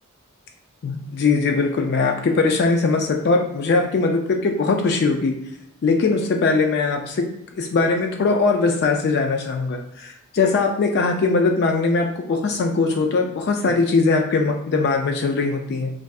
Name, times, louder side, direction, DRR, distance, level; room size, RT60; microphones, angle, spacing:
voice 1, 0.8-5.3 5.8-7.3 7.6-15.9, left 4 dB, 50° left, 3 dB, 0.3 m, -20 dB
2.6 x 2.3 x 3.3 m, 0.83 s
head